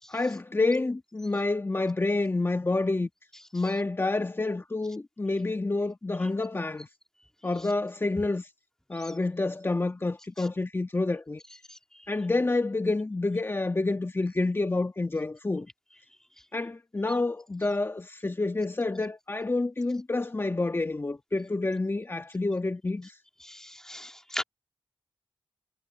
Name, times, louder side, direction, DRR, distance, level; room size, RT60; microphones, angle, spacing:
voice 1, 0.1-3.1 3.5-6.9 7.4-8.5 8.9-11.4 12.1-15.7 16.5-23.2, left 2 dB, 25° left, 1.7 m, -28 dB
voice 2, 23.5-24.4, equal, 5° left, 2.7 m, -36 dB
cardioid pair, 55°, 9 cm